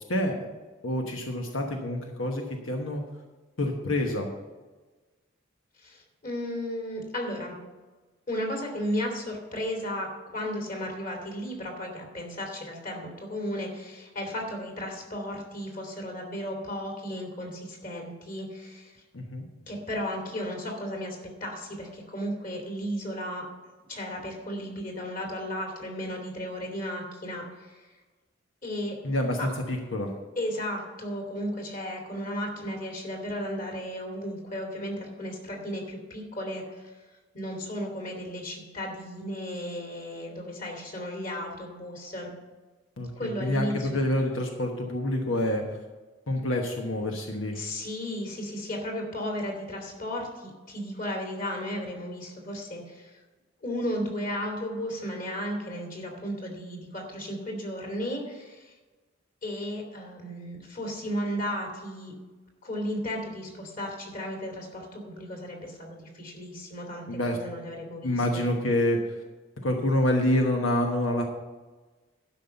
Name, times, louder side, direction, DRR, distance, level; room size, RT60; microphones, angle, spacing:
voice 1, 0.1-0.5 0.8-3.0 3.6-4.3 19.1-19.4 29.0-30.1 43.0-45.6 46.3-47.6 67.1-67.4 68.0-69.0 69.6-71.2, left 1 dB, 85° left, 2 dB, 1.2 m, -27 dB
voice 2, 5.8-7.5 8.3-10.1 10.3-19.0 19.7-23.4 23.9-27.9 28.6-29.0 29.4-29.5 30.4-37.0 37.3-42.3 43.2-44.1 47.5-53.2 53.6-58.7 59.4-62.1 62.6-68.5, equal, 45° left, 2 dB, 2.7 m, -34 dB
12.0 x 5.6 x 6.8 m, 1.3 s
head